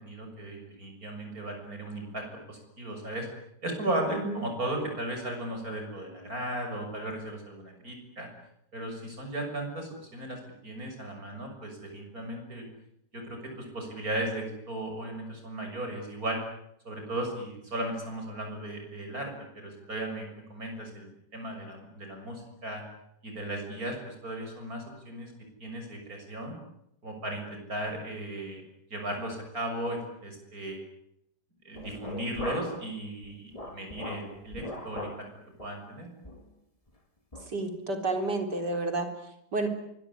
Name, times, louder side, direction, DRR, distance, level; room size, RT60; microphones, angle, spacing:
voice 1, 0.0-3.3 3.6-8.3 8.7-12.7 13.1-16.4 16.8-22.8 23.2-25.3 25.6-26.6 27.0-28.6 28.9-30.8 31.7-35.3 35.6-36.1, right 1 dB, 55° right, 3 dB, 7.3 m, -36 dB
sound 1, 31.7-32.9 33.2-35.3 35.6-35.8 36.2-36.5 36.9-37.0 37.3-37.5, left 2 dB, 20° left, 3.1 m, -40 dB
voice 2, 37.5-39.1 39.5-39.7, right 2 dB, 75° right, 6 dB, 4.5 m, -30 dB
25.0 x 22.5 x 9.9 m, 0.77 s
omnidirectional pair, 1.8 m